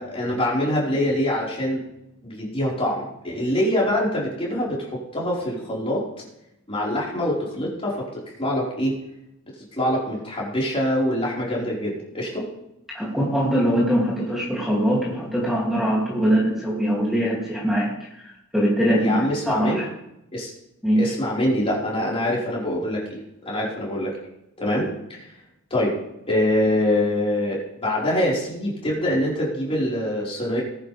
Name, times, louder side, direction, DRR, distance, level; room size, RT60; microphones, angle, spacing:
voice 1, 0.0-1.8 2.2-6.0 6.7-8.9 9.7-12.5 19.0-19.8 20.3-20.5 21.0-23.2 23.4-24.1 24.6-24.9 25.7-25.9 26.3-30.6, left 1 dB, 25° left, -5 dB, 4.8 m, -24 dB
voice 2, 12.9-17.9 18.5-19.9 20.8-21.1, equal, ahead, -6 dB, 2.8 m, -22 dB
19.5 x 10.5 x 3.5 m, 0.83 s
head